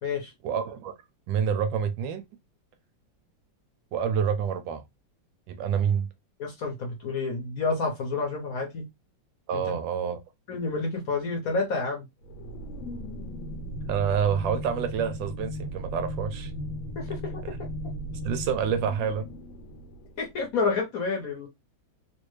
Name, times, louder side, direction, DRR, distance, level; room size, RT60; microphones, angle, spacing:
voice 1, 0.4-0.9 1.3-2.2 3.9-4.8 5.5-6.1 9.5-10.2 13.9-16.5 18.2-19.3, right 7 dB, 75° right, 1.2 m, -27 dB
voice 2, 6.4-8.8 9.5-9.8 10.5-12.0 17.0-17.5 20.2-21.5, left 4 dB, 55° left, 1.1 m, -29 dB
sound 1, 12.2-20.5, equal, 80° left, 1.6 m, -36 dB
3.3 x 2.6 x 3.1 m
omnidirectional pair, 2.1 m